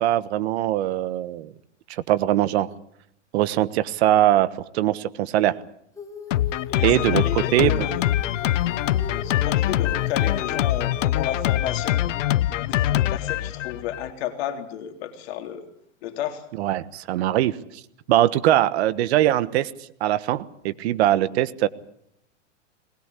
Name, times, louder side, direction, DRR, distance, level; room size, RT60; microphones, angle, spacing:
voice 1, 0.0-1.5 1.9-2.7 3.3-5.6 6.8-7.2 7.5-7.8 16.6-17.6 18.1-19.7 20.0-21.7, right 13 dB, 55° right, 14 dB, 1.4 m, -21 dB
Female singing, 6.0-11.7, left 5 dB, 10° left, 2.9 m, -39 dB
Drum kit, 6.3-14.1, left 13 dB, 75° left, 1.0 m, -24 dB
voice 2, 6.7-8.1 9.2-12.1 12.6-15.7 16.0-16.4, left 10 dB, 55° left, 5 dB, 3.8 m, -32 dB
20.5 x 20.5 x 8.4 m, 0.72 s
supercardioid pair, 145°, 37 cm